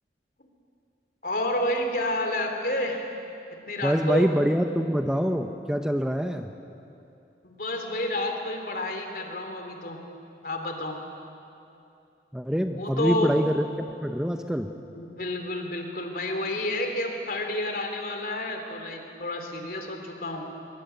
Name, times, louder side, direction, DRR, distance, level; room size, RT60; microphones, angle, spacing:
voice 1, 1.2-3.1 3.7-4.3 7.4-10.0 10.4-11.0 12.8-13.4 14.8-20.4, left 1 dB, 55° left, 4 dB, 3.3 m, -30 dB
voice 2, 3.8-6.5 12.3-13.7 14.0-14.7, equal, 5° right, 6 dB, 0.8 m, -25 dB
23.0 x 23.0 x 9.3 m, 2.7 s
head